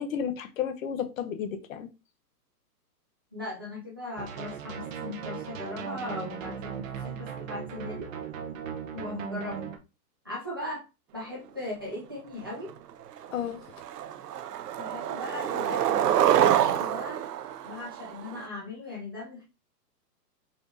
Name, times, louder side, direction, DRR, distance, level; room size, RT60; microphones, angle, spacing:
voice 1, 0.0-1.9 13.3-13.6, left 8 dB, 55° left, 0.9 m, -32 dB
voice 2, 3.3-8.1 8.9-9.6 10.2-10.9 11.1-12.7 14.8-17.2 17.6-19.4, left 2 dB, 15° right, 0.3 m, -38 dB
sound 1, 4.2-9.8, right 7 dB, 55° right, 0.9 m, -37 dB
Skateboard, 12.7-12.8 13.2-13.5 13.8-18.4, right 10 dB, 80° right, 0.7 m, -26 dB
4.6 x 4.3 x 2.6 m
hypercardioid pair, 165°, 48 cm